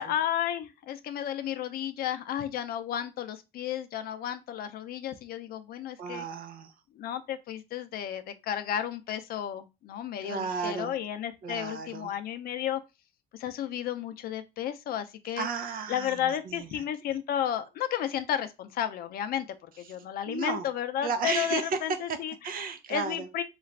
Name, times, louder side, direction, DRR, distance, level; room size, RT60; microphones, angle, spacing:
voice 1, 0.0-6.2 7.0-12.8 13.3-15.5 15.9-19.5 19.8-22.3 22.9-23.4, left 10 dB, 65° left, 0.5 m, -32 dB
voice 2, 6.0-6.7 10.2-10.9 11.4-12.1 15.4-16.8 20.3-20.7 21.0-21.8 22.1-22.2 22.4-23.3, right 5 dB, 60° right, 0.6 m, -33 dB
3.8 x 2.4 x 3.2 m
cardioid pair, 110°, 17 cm